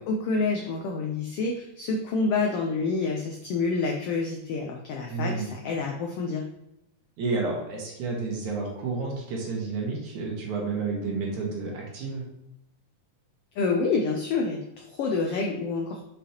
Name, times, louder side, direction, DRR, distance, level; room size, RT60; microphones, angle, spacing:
voice 1, 0.1-6.4 13.5-16.1, left 4 dB, 85° left, 2 dB, 1.3 m, -28 dB
voice 2, 5.1-5.5 7.2-12.2, right 4 dB, 75° right, -2 dB, 2.8 m, -30 dB
7.1 x 5.1 x 2.9 m, 0.83 s
omnidirectional pair, 3.5 m